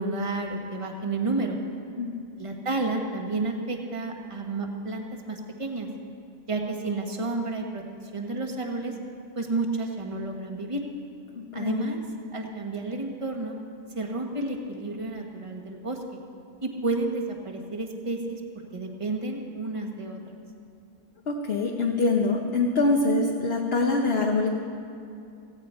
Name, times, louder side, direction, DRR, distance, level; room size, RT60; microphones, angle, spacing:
voice 1, 0.0-1.6 2.4-5.9 6.5-7.8 8.1-9.0 9.3-10.8 11.5-12.0 12.3-13.5 13.9-16.2 16.6-20.2, right 2 dB, 20° right, 2 dB, 1.3 m, -31 dB
voice 2, 11.3-11.8 21.3-24.5, left 3 dB, 45° left, 0 dB, 1.1 m, -24 dB
17.0 x 16.0 x 4.4 m, 2.5 s
omnidirectional pair, 1.7 m